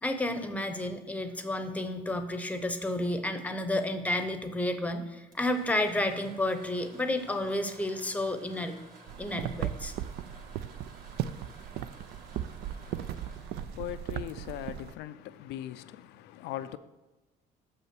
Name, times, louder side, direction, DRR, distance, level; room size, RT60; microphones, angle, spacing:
voice 1, 0.0-8.8 9.2-9.9, left 1 dB, 10° left, 0.8 m, -31 dB
sound 1, 5.1-14.9, right 2 dB, 55° right, 1.9 m, -54 dB
sound 2, 9.1-14.9, right 10 dB, 75° right, 0.4 m, -37 dB
voice 2, 12.7-16.8, left 13 dB, 85° left, 0.4 m, -41 dB
6.8 x 5.5 x 6.0 m
cardioid pair, 110°, 17 cm